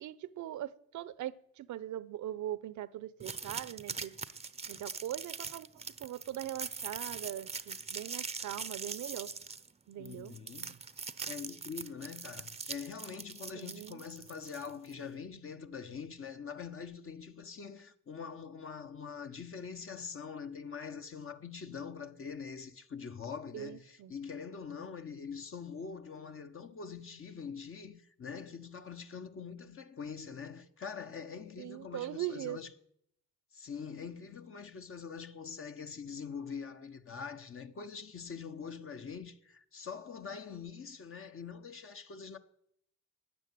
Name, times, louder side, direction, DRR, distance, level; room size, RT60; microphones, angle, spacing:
voice 1, 0.0-4.2 4.7-9.3 9.9-10.8 13.5-14.0 23.5-24.1 31.6-32.6, right 13 dB, 75° right, 0.9 m, -41 dB
sound 1, 3.2-14.9, right 4 dB, 20° right, 0.7 m, -42 dB
voice 2, 10.0-10.7 11.3-32.7 33.5-42.4, left 6 dB, 45° left, 1.3 m, -44 dB
14.0 x 9.6 x 9.3 m
cardioid pair, 90°, 30 cm